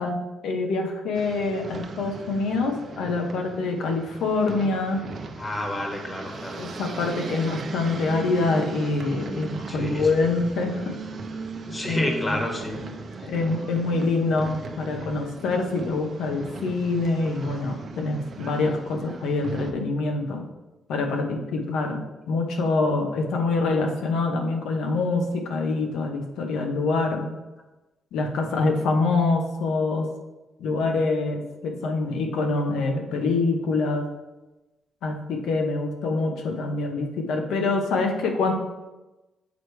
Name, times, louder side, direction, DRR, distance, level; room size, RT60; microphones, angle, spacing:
voice 1, 0.0-5.0 6.6-10.9 11.8-12.4 13.3-20.4 20.9-27.3 28.1-30.1 30.6-34.1 35.0-38.5, left 3 dB, 80° left, 3 dB, 1.0 m, -25 dB
sound 1, 1.1-19.7, right 3 dB, 50° right, 0.6 m, -38 dB
voice 2, 5.4-6.6 9.7-10.1 11.7-12.8, left 1 dB, 20° left, 2 dB, 1.4 m, -29 dB
7.2 x 3.1 x 4.6 m, 1.1 s
cardioid pair, 90°, 0 cm